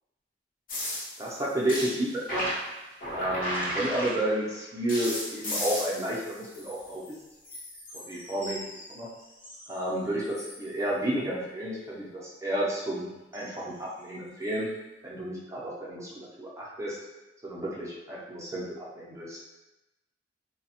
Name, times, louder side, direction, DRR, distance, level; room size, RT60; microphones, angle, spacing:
sound 1, 0.7-4.5 4.9-7.2 7.4-9.8 10.2-10.6 13.3-13.5 14.4-14.5, equal, 50° left, 0.8 m, -35 dB
voice 1, 1.2-2.5 3.1-7.0 7.9-8.6 8.9-9.1 9.7-14.7 15.0-17.0 17.4-19.4, right 1 dB, 15° right, -6 dB, 0.4 m, -31 dB
3.1 x 2.0 x 2.8 m, 1.0 s
head